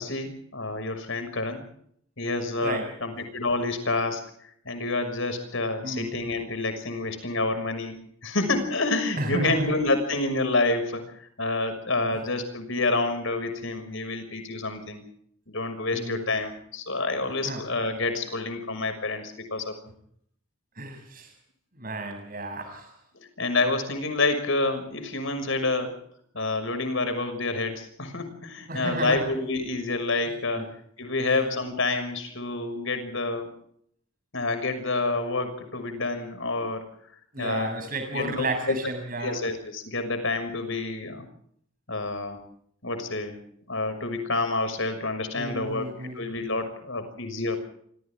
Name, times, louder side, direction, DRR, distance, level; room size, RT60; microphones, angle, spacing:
voice 1, 0.0-1.6 2.2-4.2 4.6-15.0 15.5-19.9 23.4-26.0 26.3-30.6 31.0-33.5 34.3-36.9 37.4-37.7 38.1-38.9 39.2-41.2 41.9-42.4 42.8-43.4 43.7-47.6, left 3 dB, 60° left, 8 dB, 6.2 m, -28 dB
voice 2, 9.2-9.8 15.9-16.2 17.4-17.6 20.8-21.3 21.8-22.9 28.7-29.3 30.6-30.7 37.3-39.4 45.4-46.3, right 1 dB, 40° right, 6 dB, 7.3 m, -32 dB
28.5 x 25.5 x 3.7 m, 0.66 s
head